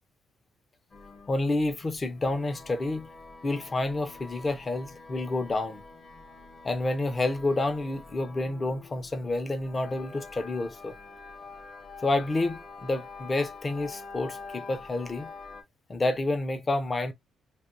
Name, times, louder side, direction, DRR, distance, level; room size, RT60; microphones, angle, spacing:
sound 1, 0.9-15.6, left 4 dB, 45° left, 1.4 m, -46 dB
voice 1, 1.3-3.1 3.4-5.8 6.6-10.9 12.0-15.3 15.9-17.1, left 2 dB, 30° left, 0.8 m, -29 dB
3.3 x 2.8 x 2.7 m
cardioid pair, 90°, 0 cm